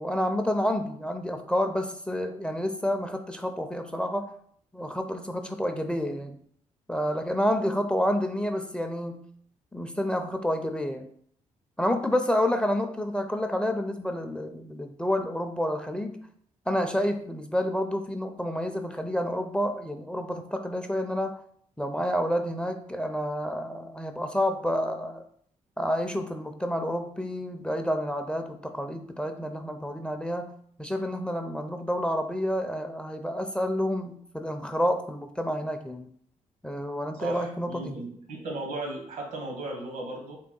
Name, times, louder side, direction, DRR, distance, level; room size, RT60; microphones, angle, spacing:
voice 1, 0.0-4.3 4.7-6.4 6.9-9.2 9.7-11.1 11.8-16.2 16.7-21.4 21.8-25.2 25.8-30.5 30.8-36.1 36.6-38.0, equal, 5° left, 6 dB, 0.4 m, -29 dB
voice 2, 37.2-40.4, right 2 dB, 80° right, 1 dB, 1.0 m, -36 dB
3.6 x 2.3 x 3.7 m, 0.63 s
supercardioid pair, 65°, 14 cm